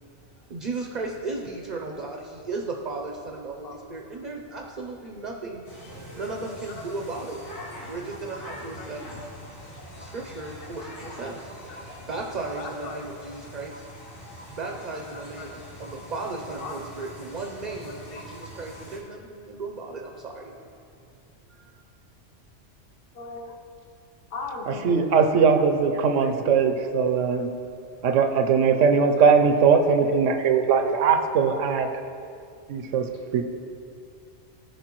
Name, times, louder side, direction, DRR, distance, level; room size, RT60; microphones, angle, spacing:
voice 1, 0.2-7.4 7.9-9.0 10.0-13.8 14.5-20.6 21.5-21.7, right 3 dB, 45° right, 1 dB, 0.6 m, -35 dB
sound 1, 5.6-19.0, equal, 70° left, 1.9 m, -43 dB
voice 2, 12.6-13.1 15.1-15.5 16.6-17.1 17.9-18.2 23.1-23.5 24.3-25.1 25.6-27.2 29.7-31.3 31.8-32.0, left 3 dB, 50° left, 1 dB, 1.0 m, -39 dB
voice 3, 24.7-27.5 28.0-31.9 32.7-33.1 33.3-33.4, right 6 dB, 80° right, 6 dB, 1.0 m, -20 dB
14.5 x 5.4 x 3.0 m, 2.4 s
omnidirectional pair, 1.3 m